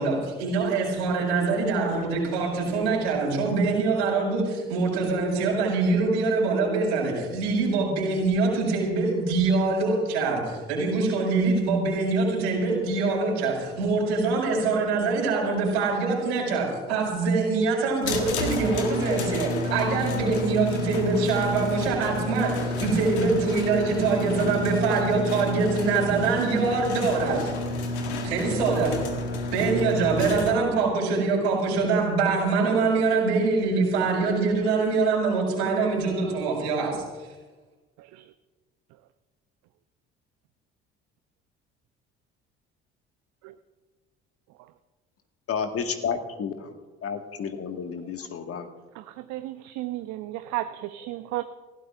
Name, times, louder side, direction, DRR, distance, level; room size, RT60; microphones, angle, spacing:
voice 1, 0.0-27.5 28.2-28.9 29.5-37.0, right 4 dB, 75° right, -2 dB, 6.1 m, -24 dB
sound 1, 18.0-30.5, left 2 dB, 75° left, 1.8 m, -30 dB
voice 2, 45.5-46.7 47.0-48.7, left 6 dB, 45° left, 5 dB, 1.9 m, -31 dB
voice 3, 48.9-51.4, right 15 dB, 55° right, 11 dB, 0.7 m, -34 dB
30.0 x 17.0 x 2.6 m, 1.3 s
figure-of-eight pair, 50°, 33 cm